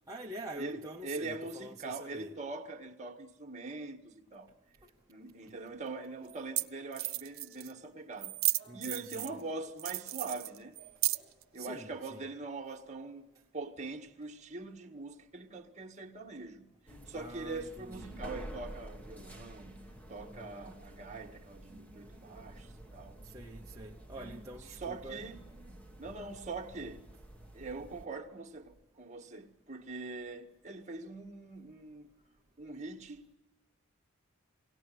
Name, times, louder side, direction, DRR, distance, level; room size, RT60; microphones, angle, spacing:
voice 1, 0.1-2.3 4.8-4.9 8.7-9.4 11.6-12.2 17.1-18.2 23.2-25.3, right 1 dB, 15° right, 0.9 m, -46 dB
voice 2, 0.6-4.5 5.1-8.4 8.7-10.8 11.5-16.7 17.1-19.8 20.1-23.2 24.1-24.4 24.8-25.5 26.0-27.1 27.5-32.1 32.6-33.3, right 3 dB, 35° right, 1.8 m, -43 dB
sound 1, 4.8-11.8, right 1 dB, 60° left, 5.9 m, -61 dB
sound 2, 5.5-5.6 6.3-6.4 6.6-6.7 6.9-7.7 8.2-9.4 9.8-11.4, right 17 dB, 75° right, 0.9 m, -33 dB
sound 3, 16.9-28.1, right 1 dB, 5° left, 1.3 m, -50 dB
23.5 x 18.0 x 9.3 m
head